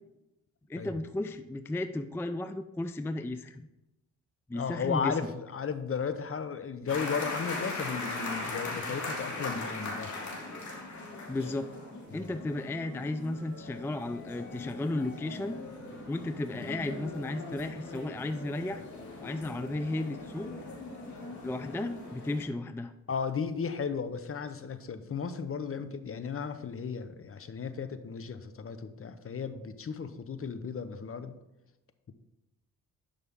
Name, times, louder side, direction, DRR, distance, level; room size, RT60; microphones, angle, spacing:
voice 1, 0.7-3.7 4.5-5.2 11.3-11.7 12.1-15.6 16.1-18.8 19.2-20.5 21.4-22.9, left 2 dB, 5° left, 9 dB, 0.4 m, -34 dB
voice 2, 4.5-10.2 12.1-12.3 23.1-31.4, left 6 dB, 40° left, 11 dB, 0.8 m, -35 dB
sound 1, 6.9-22.4, left 2 dB, 60° left, 2.6 m, -40 dB
11.0 x 5.4 x 3.6 m, 0.95 s
cardioid pair, 75°, 34 cm